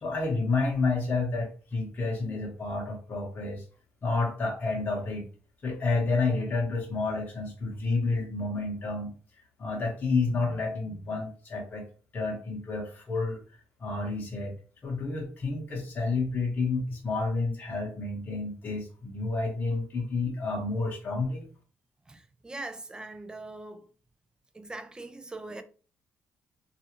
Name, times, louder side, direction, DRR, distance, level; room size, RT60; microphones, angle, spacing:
voice 1, 0.0-3.6 4.0-5.3 5.6-9.1 9.6-11.9 12.1-13.4 13.8-14.5 14.8-21.5, left 3 dB, 35° left, 0.9 m, -30 dB
voice 2, 22.1-23.9 24.5-25.6, right 2 dB, 15° right, 0.3 m, -41 dB
2.4 x 2.3 x 2.9 m
cardioid pair, 110°, 5 cm